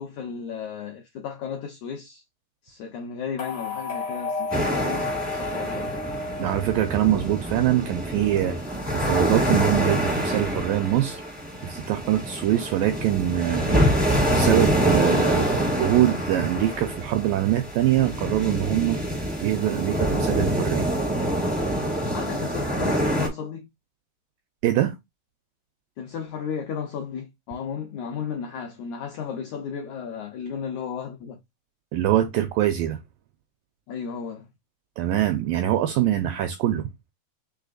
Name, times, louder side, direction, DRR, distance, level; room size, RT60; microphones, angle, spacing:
voice 1, 0.0-2.2 2.6-5.9 22.1-23.7 26.0-31.4 33.9-34.5, left 7 dB, 80° left, 1.6 m, -34 dB
sound 1, 3.4-7.6, left 4 dB, 60° left, 0.7 m, -32 dB
sound 2, 4.5-23.3, equal, 10° right, 0.5 m, -26 dB
voice 2, 6.4-8.6 8.9-11.2 11.6-19.0 19.4-20.9 24.6-24.9 31.9-33.0 35.0-36.9, right 12 dB, 85° right, 2.0 m, -23 dB
5.7 x 3.3 x 2.5 m
omnidirectional pair, 4.5 m